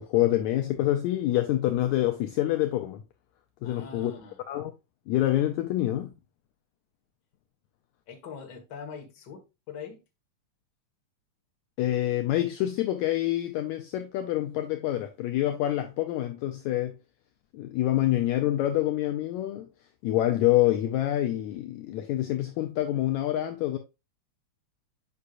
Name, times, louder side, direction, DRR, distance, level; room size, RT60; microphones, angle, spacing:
voice 1, 0.0-3.0 3.6-4.1 4.5-4.7 5.1-6.1 11.8-17.0 17.5-19.7 20.0-23.8, left 14 dB, 75° left, 1.8 m, -26 dB
voice 2, 3.6-4.4 8.1-10.0, left 6 dB, 45° left, 1.6 m, -43 dB
8.2 x 5.5 x 2.5 m
omnidirectional pair, 3.6 m